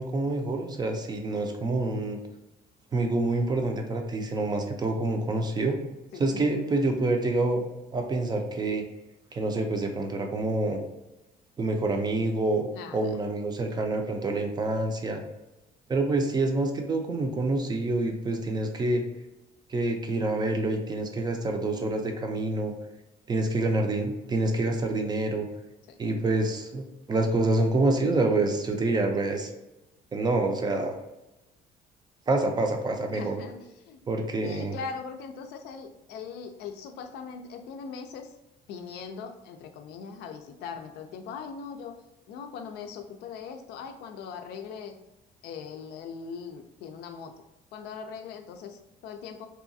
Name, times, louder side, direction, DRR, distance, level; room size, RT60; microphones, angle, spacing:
voice 1, 0.0-2.2 2.9-5.8 6.2-7.7 7.9-8.9 9.3-10.8 11.6-15.2 15.9-19.0 19.7-22.7 23.3-25.5 26.0-29.5 30.1-30.9 32.3-33.4 34.1-34.8, right 2 dB, 25° right, 4 dB, 0.4 m, -27 dB
voice 2, 6.1-6.4 12.7-13.1 25.9-26.0 33.1-34.0 34.4-38.3 38.7-42.0 42.3-45.0 45.4-47.3 47.7-49.5, left 6 dB, 80° left, 6 dB, 0.4 m, -40 dB
2.7 x 2.3 x 2.6 m, 0.97 s
cardioid pair, 110°, 17 cm